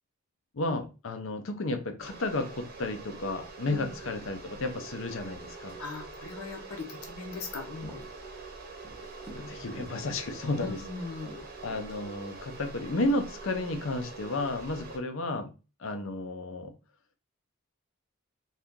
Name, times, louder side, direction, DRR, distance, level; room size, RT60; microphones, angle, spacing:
voice 1, 0.5-5.8 9.3-10.8 11.6-15.5 15.8-16.7, left 2 dB, 60° left, 6 dB, 0.5 m, -32 dB
sound 1, 2.0-15.0, right 3 dB, 45° right, 0.7 m, -44 dB
voice 2, 5.8-8.0 9.3-9.7 10.5-11.5, left 4 dB, 85° left, 2 dB, 0.9 m, -40 dB
Walk footsteps, 7.6-9.5 9.8-10.1 10.4-13.2 13.7-14.0, right 1 dB, 5° right, 0.6 m, -51 dB
2.7 x 2.4 x 3.6 m, 0.31 s
head